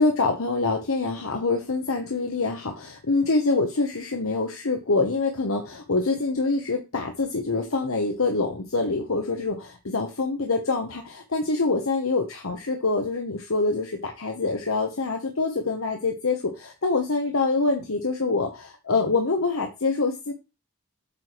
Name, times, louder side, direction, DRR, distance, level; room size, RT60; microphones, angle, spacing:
voice 1, 0.0-20.3, left 3 dB, 80° left, 4 dB, 1.1 m, -25 dB
8.3 x 4.5 x 4.9 m, 0.27 s
head